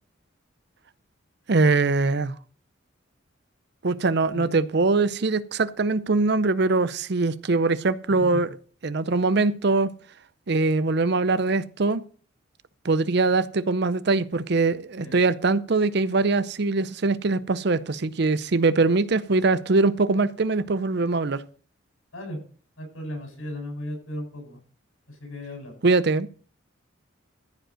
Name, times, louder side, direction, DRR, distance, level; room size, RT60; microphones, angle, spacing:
voice 1, 1.5-2.3 3.8-8.5 8.8-9.9 10.5-12.0 12.8-21.4 25.8-26.3, right 3 dB, 55° right, 0.6 m, -22 dB
voice 2, 4.3-4.6 8.2-8.5 15.0-15.2 22.1-22.4 22.8-24.6 25.1-25.7, left 1 dB, 90° left, 7.7 m, -36 dB
14.5 x 5.3 x 6.3 m
head